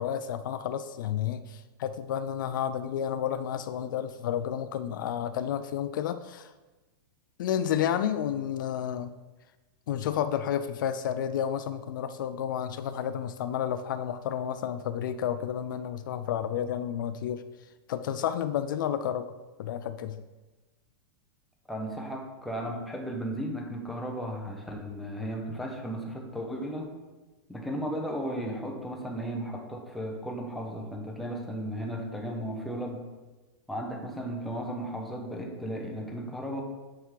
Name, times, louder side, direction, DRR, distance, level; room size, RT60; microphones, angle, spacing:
voice 1, 0.0-6.5 7.4-9.1 9.9-17.4 17.9-19.3 19.6-20.2, left 9 dB, 55° left, 11 dB, 0.4 m, -31 dB
voice 2, 21.7-26.9 27.5-33.0 33.7-36.6, equal, ahead, 0 dB, 0.6 m, -35 dB
9.1 x 3.5 x 4.7 m, 1.2 s
supercardioid pair, 175°, 13 cm